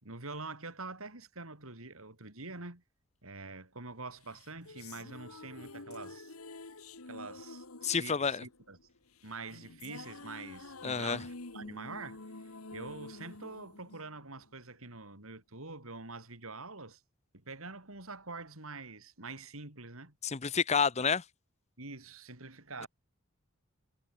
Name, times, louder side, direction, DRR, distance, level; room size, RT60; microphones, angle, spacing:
voice 1, 0.0-2.8 3.2-6.3 7.1-8.8 9.2-12.2 12.7-17.0 17.3-20.2 21.8-22.9, right 3 dB, 70° right, 4.6 m, -45 dB
sound 1, 4.3-14.7, left 3 dB, 85° left, 2.0 m, -48 dB
voice 2, 7.8-8.4 10.8-11.2 20.2-21.2, left 6 dB, 30° left, 0.7 m, -29 dB
head